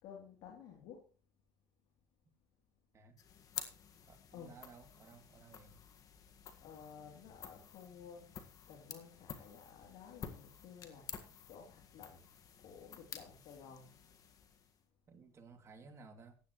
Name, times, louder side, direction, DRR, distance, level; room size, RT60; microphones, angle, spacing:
voice 1, 0.0-1.0 4.3-4.7 6.6-8.4 8.7-11.1 11.5-12.2 12.6-13.9, left 7 dB, 65° left, 0 dB, 3.1 m, -54 dB
sound 1, 3.2-14.9, left 7 dB, 45° left, 1.7 m, -51 dB
voice 2, 4.1-5.7 15.1-16.4, right 4 dB, 35° right, 4 dB, 2.7 m, -57 dB
15.5 x 10.5 x 3.1 m, 0.38 s
supercardioid pair, 85°, 8 cm